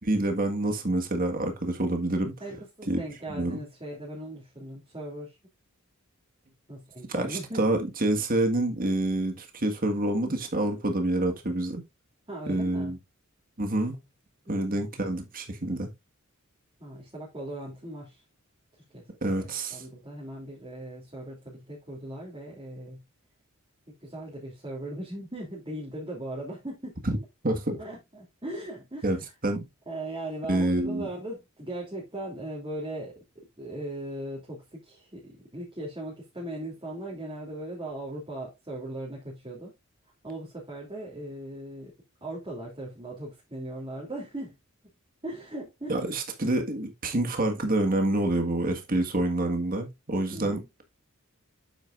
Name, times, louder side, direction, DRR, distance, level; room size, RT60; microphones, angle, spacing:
voice 1, 0.0-2.3 2.9-3.0 3.3-3.6 7.1-11.8 12.5-13.0 13.6-14.0 14.5-15.9 19.2-19.8 27.0-27.2 27.4-27.8 29.0-29.2 29.4-29.6 30.5-31.1 45.9-50.6, right 1 dB, 40° right, 1.7 m, -27 dB
voice 2, 2.4-5.4 6.7-7.6 12.3-12.9 16.8-18.2 18.9-19.0 19.4-23.0 23.9-27.0 27.5-29.2 29.9-33.1 33.6-39.7 40.2-41.9 42.2-44.6 45.2-46.1 50.3-50.6, right 1 dB, 25° right, 3.0 m, -38 dB
8.9 x 7.8 x 2.5 m
head